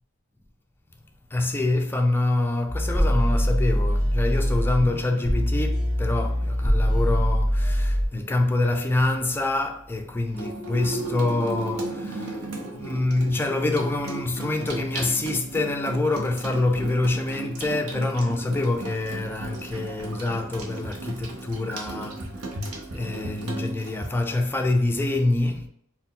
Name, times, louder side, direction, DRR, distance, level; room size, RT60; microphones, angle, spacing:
voice 1, 1.3-22.4 22.6-25.7, left 2 dB, 10° left, 0.4 m, -26 dB
sound 1, 2.7-8.1, equal, 30° right, 1.5 m, -23 dB
Water tap faucet / Sink (filling or washing), 10.3-24.1, right 2 dB, 75° right, 0.8 m, -35 dB
4.4 x 2.2 x 3.7 m
head